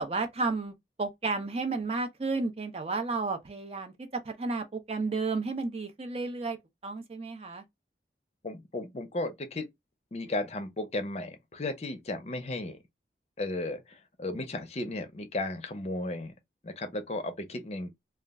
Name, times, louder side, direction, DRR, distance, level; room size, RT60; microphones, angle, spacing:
voice 1, 0.0-6.6 6.8-7.6, right 3 dB, 35° right, 0.5 m, -32 dB
voice 2, 8.4-9.7 10.1-12.8 13.4-16.3 16.6-17.9, left 2 dB, 35° left, 0.5 m, -35 dB
2.3 x 2.1 x 3.4 m
head